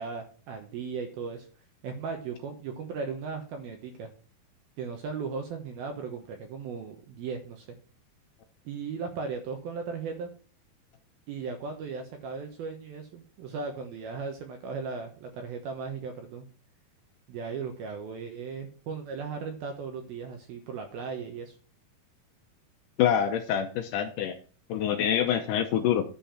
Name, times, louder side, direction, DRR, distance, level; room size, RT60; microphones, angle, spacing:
voice 1, 0.0-1.5 1.8-4.1 4.8-7.7 8.7-10.3 11.3-16.5 17.3-21.5, right 5 dB, 70° right, 4 dB, 2.8 m, -37 dB
voice 2, 23.0-24.4 24.7-26.0, left 9 dB, 85° left, 5 dB, 1.9 m, -26 dB
10.5 x 5.6 x 5.7 m, 0.39 s
omnidirectional pair, 4.8 m